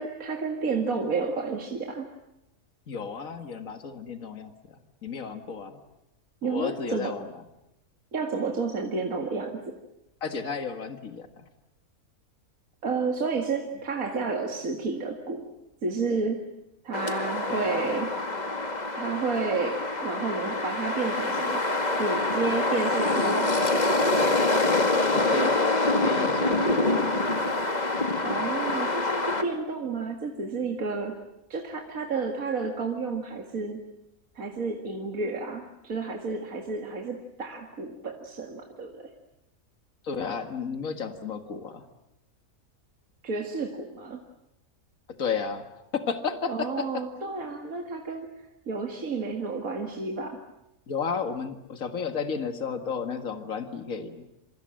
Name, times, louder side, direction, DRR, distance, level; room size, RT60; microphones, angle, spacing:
voice 1, 0.0-2.1 6.4-7.2 8.1-9.8 12.8-15.5 15.8-16.5 16.8-18.2 18.9-21.7 22.0-23.8 28.2-31.2 31.5-33.8 34.4-39.1 43.2-44.2 46.5-48.3 48.7-50.4, right 4 dB, 70° right, 3 dB, 2.5 m, -31 dB
voice 2, 2.9-4.5 5.0-5.8 6.4-7.2 10.2-11.4 17.5-17.9 25.1-25.6 26.0-26.8 40.0-41.8 45.2-45.7 45.9-47.0 50.9-54.3, left 5 dB, 65° left, 8 dB, 2.2 m, -32 dB
sound 1, 16.9-29.4, left 2 dB, 30° left, 2.2 m, -25 dB
27.5 x 25.0 x 7.7 m, 0.89 s
omnidirectional pair, 1.5 m